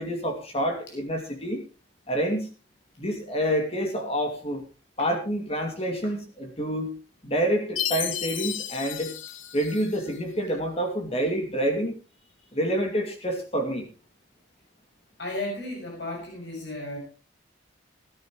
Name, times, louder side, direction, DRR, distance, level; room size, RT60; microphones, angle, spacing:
voice 1, 0.0-1.6 2.1-2.5 3.0-4.6 5.0-7.0 7.2-9.1 9.5-12.0 12.5-13.9, equal, 30° left, 4 dB, 2.5 m, -28 dB
Chime, 7.8-10.2, left 11 dB, 85° left, 1.1 m, -33 dB
voice 2, 15.2-17.0, left 1 dB, 65° left, 0 dB, 6.3 m, -34 dB
16.5 x 13.5 x 3.1 m, 0.33 s
head